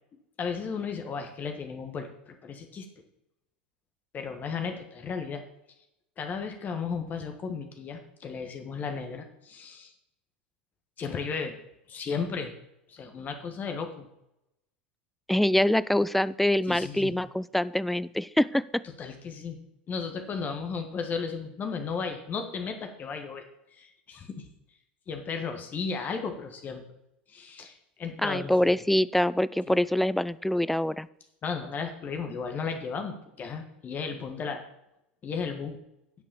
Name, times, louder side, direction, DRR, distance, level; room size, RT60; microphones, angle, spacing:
voice 1, 0.4-2.9 4.1-5.4 6.2-9.9 11.0-11.5 11.9-12.5 12.9-14.1 16.7-17.1 19.0-19.6 19.9-23.4 23.7-24.5 25.1-26.8 27.3-28.8 29.7-29.8 31.4-34.6 35.2-35.8, left 5 dB, 30° left, 5 dB, 1.5 m, -34 dB
voice 2, 15.3-18.8 28.2-31.1, left 1 dB, 5° left, 18 dB, 0.3 m, -25 dB
9.4 x 5.5 x 6.9 m, 0.82 s
figure-of-eight pair, 80°, 5 cm